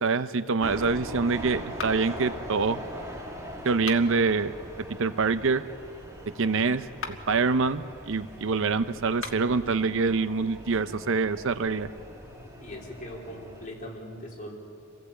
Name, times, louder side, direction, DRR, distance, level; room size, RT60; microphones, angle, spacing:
voice 1, 0.0-2.8 3.6-5.6 6.4-11.9, right 4 dB, 65° right, 12 dB, 0.7 m, -26 dB
sound 1, 0.6-13.7, equal, 15° right, 2.5 m, -42 dB
sound 2, 1.7-2.3 3.7-4.3 6.9-7.4 9.1-9.6, left 5 dB, 65° left, 1.7 m, -39 dB
voice 2, 12.6-14.5, left 1 dB, 40° left, -2 dB, 4.0 m, -40 dB
28.0 x 16.5 x 8.2 m, 2.7 s
head